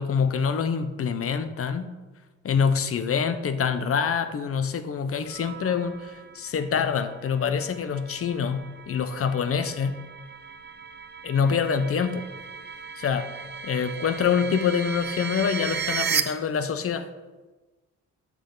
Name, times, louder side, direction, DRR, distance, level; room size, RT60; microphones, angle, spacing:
voice 1, 0.0-1.9 2.4-10.0 11.2-12.3 13.0-17.1, left 6 dB, 50° left, 10 dB, 0.9 m, -26 dB
sound 1, 5.3-16.2, right 6 dB, 35° right, 0.8 m, -35 dB
12.5 x 5.9 x 3.9 m, 1.2 s
cardioid pair, 90°, 30 cm